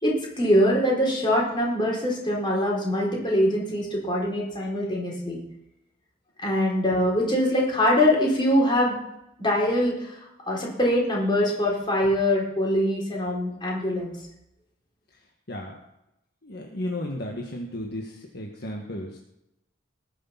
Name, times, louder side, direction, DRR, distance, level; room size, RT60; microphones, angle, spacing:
voice 1, 0.0-5.4 6.4-9.0 9.4-10.2 10.5-14.2, left 1 dB, 25° left, -3 dB, 4.3 m, -23 dB
voice 2, 16.4-19.2, left 1 dB, 55° left, 0 dB, 1.6 m, -34 dB
20.0 x 6.7 x 5.9 m, 0.85 s
head